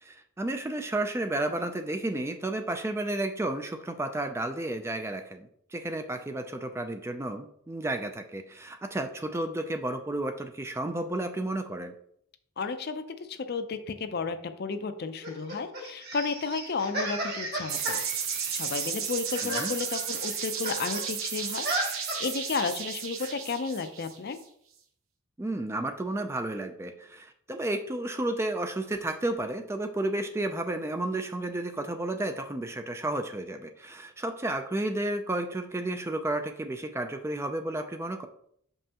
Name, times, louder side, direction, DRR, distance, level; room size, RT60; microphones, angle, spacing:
voice 1, 0.0-11.9 19.4-19.7 25.4-38.3, right 1 dB, 10° right, 7 dB, 0.3 m, -32 dB
voice 2, 12.6-18.0 18.5-24.4, left 4 dB, 50° left, 9 dB, 0.5 m, -33 dB
sound 1, 15.2-21.1 21.3-22.5 23.2-23.3, right 1 dB, 50° right, 1.6 m, -35 dB
sound 2, 17.7-24.4, right 7 dB, 75° right, 0.8 m, -34 dB
6.3 x 5.4 x 2.9 m, 0.69 s
head